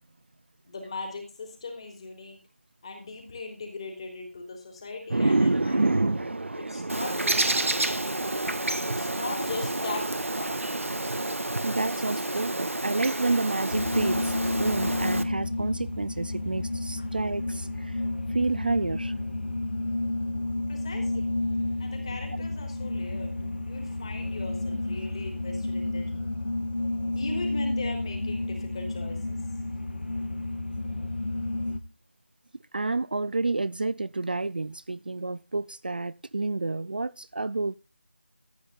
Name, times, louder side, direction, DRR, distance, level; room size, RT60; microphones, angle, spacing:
voice 1, 0.7-2.4 2.8-6.0 6.6-7.7 8.8-10.1 10.4-10.6 17.0-17.1 20.7-21.2 21.8-23.3 23.6-26.4 27.1-29.4, left 3 dB, 25° left, 3.6 m, -39 dB
sound 1, 5.1-11.4, right 2 dB, 60° right, 1.3 m, -29 dB
Bird, 6.9-15.2, right 2 dB, 85° right, 1.6 m, -30 dB
voice 2, 11.6-18.0 18.3-19.1 31.7-31.8 32.7-37.8, right 3 dB, 40° right, 0.5 m, -30 dB
sound 2, 13.7-31.8, left 2 dB, 55° left, 1.7 m, -31 dB
14.5 x 9.0 x 3.8 m
figure-of-eight pair, 170°, 7 cm